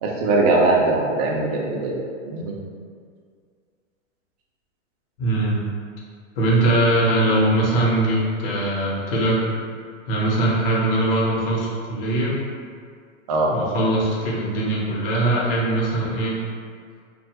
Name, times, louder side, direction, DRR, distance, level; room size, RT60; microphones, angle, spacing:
voice 1, 0.0-2.0 2.3-2.5 13.3-13.5, right 2 dB, 30° right, -2 dB, 0.4 m, -20 dB
voice 2, 5.2-5.6 6.4-9.5 10.1-12.4 13.5-16.4, right 1 dB, 45° left, -4 dB, 0.8 m, -21 dB
2.8 x 2.3 x 2.8 m, 2.1 s
hypercardioid pair, 135°, 39 cm